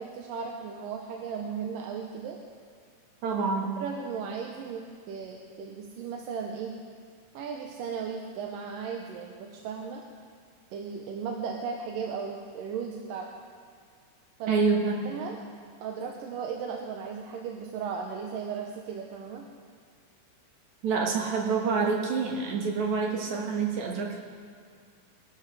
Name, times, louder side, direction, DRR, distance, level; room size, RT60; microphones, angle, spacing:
voice 1, 0.0-2.4 3.2-3.4 3.8-6.7 7.3-10.0 10.7-13.3 14.4-14.7 15.1-15.4 15.8-19.5, right 6 dB, 85° right, 1 dB, 2.5 m, -36 dB
voice 2, 3.2-3.8 14.5-15.0 20.8-24.2, right 5 dB, 65° right, -1 dB, 2.8 m, -27 dB
22.5 x 12.5 x 3.3 m, 2.1 s
omnidirectional pair, 3.8 m